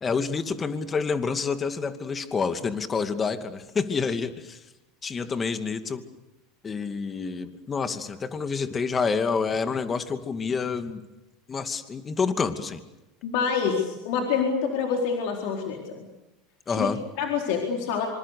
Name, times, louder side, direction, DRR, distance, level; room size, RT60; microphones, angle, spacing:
voice 1, 0.0-4.6 5.0-6.0 6.6-11.0 11.5-12.8 16.7-17.0, left 5 dB, 25° left, 8 dB, 2.5 m, -28 dB
voice 2, 13.2-16.1 16.7-16.9 17.2-18.1, left 6 dB, 65° left, 1 dB, 4.3 m, -26 dB
26.5 x 26.0 x 6.8 m, 0.98 s
hypercardioid pair, 85°, 0 cm